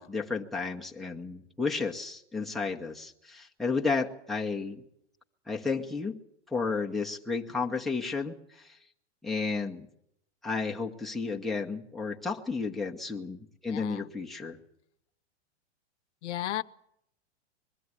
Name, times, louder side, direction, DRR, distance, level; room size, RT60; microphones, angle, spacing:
voice 1, 0.0-4.8 5.5-6.2 6.5-8.7 9.2-9.9 10.4-14.6, left 4 dB, ahead, 1.1 m, -32 dB
voice 2, 13.7-14.1 16.2-16.6, left 13 dB, 80° left, 0.7 m, -34 dB
21.5 x 13.0 x 9.7 m
hypercardioid pair, 140°, 34 cm